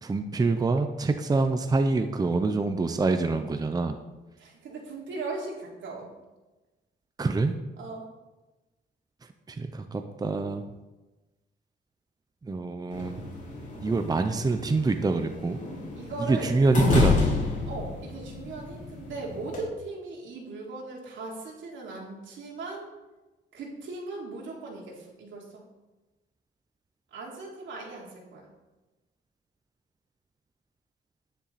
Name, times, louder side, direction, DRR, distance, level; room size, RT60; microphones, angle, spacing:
voice 1, 0.0-4.0 7.2-7.5 9.5-10.7 12.4-13.2 13.8-15.6 16.3-17.4, right 3 dB, 20° right, 7 dB, 0.7 m, -26 dB
voice 2, 4.4-6.1 7.8-8.1 16.0-16.5 17.6-22.9 23.5-25.6 27.1-28.5, right 3 dB, 75° right, -2 dB, 3.3 m, -38 dB
Heavy Door Closing, 12.9-19.6, left 3 dB, 40° left, 3.7 m, -30 dB
10.0 x 10.0 x 4.2 m, 1.1 s
cardioid pair, 120°, 20 cm